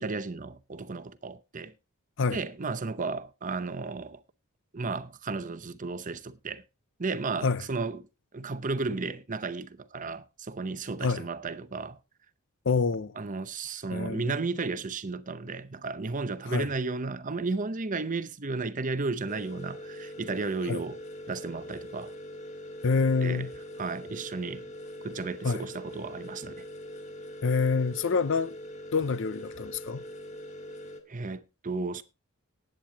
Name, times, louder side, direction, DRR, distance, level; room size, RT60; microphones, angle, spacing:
voice 1, 0.0-1.7 2.3-4.2 4.7-6.6 7.0-8.1 8.3-12.0 13.2-21.0 21.3-22.1 23.2-23.5 23.8-24.7 25.0-26.6 31.1-32.0, right 3 dB, 35° right, 0.7 m, -34 dB
voice 2, 12.7-13.2 13.9-14.3 16.5-16.7 20.7-20.8 22.8-23.5 25.4-25.6 27.4-28.5 28.9-30.0, left 4 dB, 60° left, 0.6 m, -27 dB
sound 1, 19.3-31.0, equal, 30° left, 1.7 m, -43 dB
19.0 x 9.0 x 2.9 m
head